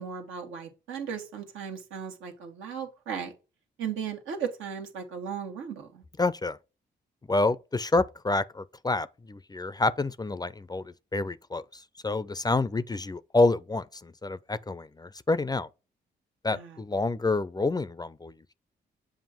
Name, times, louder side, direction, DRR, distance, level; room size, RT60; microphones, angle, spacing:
voice 1, 0.0-3.3 3.8-6.0 16.5-16.8, right 7 dB, 80° right, 1.4 m, -36 dB
voice 2, 6.2-6.6 7.3-15.7 16.4-18.5, left 3 dB, 20° left, 0.5 m, -28 dB
7.2 x 2.5 x 5.7 m
supercardioid pair, 50°, 20 cm